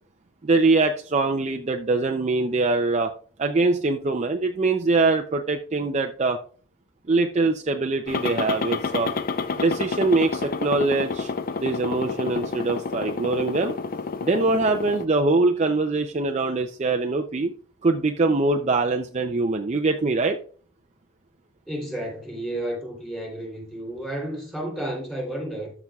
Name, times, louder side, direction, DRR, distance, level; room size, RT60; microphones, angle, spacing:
voice 1, 0.4-3.1 3.4-6.4 7.1-9.1 9.5-11.3 11.6-13.7 14.2-17.5 17.8-20.4, right 3 dB, 30° right, 0.5 m, -23 dB
sound 1, 8.1-15.1, left 4 dB, 40° left, 0.5 m, -29 dB
voice 2, 21.7-25.7, right 1 dB, ahead, 3.5 m, -32 dB
13.0 x 6.0 x 2.3 m
head